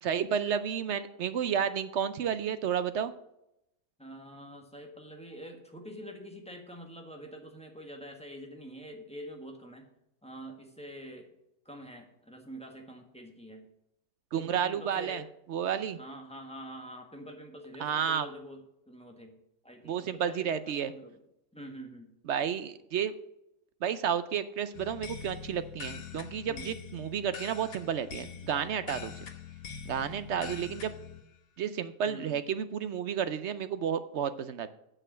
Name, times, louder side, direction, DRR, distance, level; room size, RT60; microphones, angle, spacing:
voice 1, 0.0-3.1 14.3-15.2 15.5-16.0 17.8-18.3 19.9-20.9 22.3-23.1 23.8-29.1 29.9-30.9 31.6-34.7, right 8 dB, 65° right, 12 dB, 0.7 m, -31 dB
voice 2, 4.0-9.9 10.2-11.3 11.6-13.7 14.4-15.3 15.9-19.4 19.6-21.2 21.5-22.1 26.5-26.7 32.0-32.4, equal, 5° left, 2 dB, 1.3 m, -46 dB
sound 1, 24.7-31.2, left 7 dB, 65° left, 1.4 m, -44 dB
8.8 x 6.6 x 6.2 m, 0.82 s
omnidirectional pair, 1.7 m